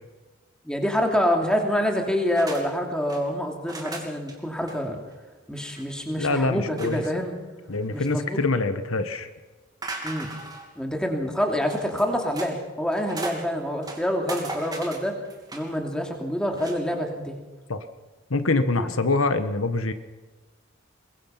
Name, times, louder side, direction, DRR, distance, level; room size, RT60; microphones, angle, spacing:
voice 1, 0.6-5.0 5.5-7.4 7.9-8.4 10.0-10.3 10.8-15.1 15.5-17.4 18.7-18.8, equal, 5° left, 2 dB, 2.9 m, -26 dB
sound 1, 2.3-2.6 2.9-3.2 3.7-4.3 4.7-4.8 5.1-5.2 5.6-5.8 6.8-7.2 7.7-8.4 9.8-10.7 11.6-12.5 12.9-13.5 13.8-15.7 16.5-16.8, right 2 dB, 20° right, 2.8 m, -37 dB
voice 2, 6.2-7.0 7.7-9.3 17.7-17.8 18.3-19.9, left 3 dB, 85° left, 9 dB, 1.4 m, -24 dB
22.5 x 22.0 x 5.9 m, 1.2 s
head